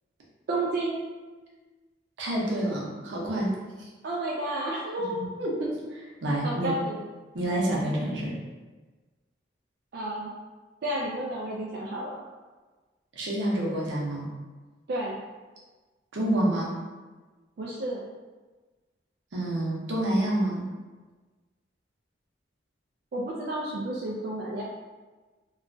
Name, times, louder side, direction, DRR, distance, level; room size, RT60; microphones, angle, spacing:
voice 1, 0.5-1.0 4.0-5.2 6.4-7.0 9.9-10.3 10.8-12.2 14.9-15.2 17.6-18.0 23.1-24.6, right 1 dB, 55° right, -4 dB, 0.3 m, -31 dB
voice 2, 2.2-3.9 5.4-6.7 7.3-8.3 13.2-14.3 16.1-16.8 19.3-20.7, right 1 dB, 85° right, -4 dB, 0.7 m, -28 dB
3.0 x 2.2 x 2.5 m, 1.3 s
head